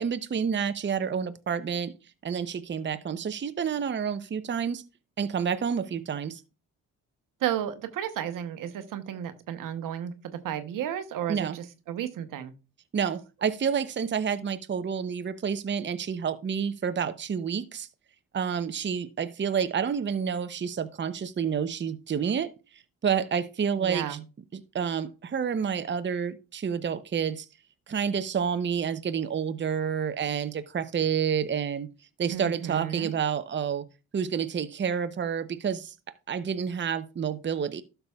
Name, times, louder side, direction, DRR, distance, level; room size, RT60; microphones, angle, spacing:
voice 1, 0.0-1.9 2.2-4.8 5.2-6.4 11.3-11.6 12.9-17.9 18.3-22.5 23.0-24.2 24.5-27.5 27.9-31.9 32.2-33.8 34.1-35.9 36.3-37.8, right 7 dB, 35° right, 0.7 m, -29 dB
voice 2, 7.4-12.5 23.8-24.2 32.3-33.1, right 10 dB, 75° right, 1.0 m, -33 dB
12.0 x 6.8 x 2.4 m
supercardioid pair, 60°, 33 cm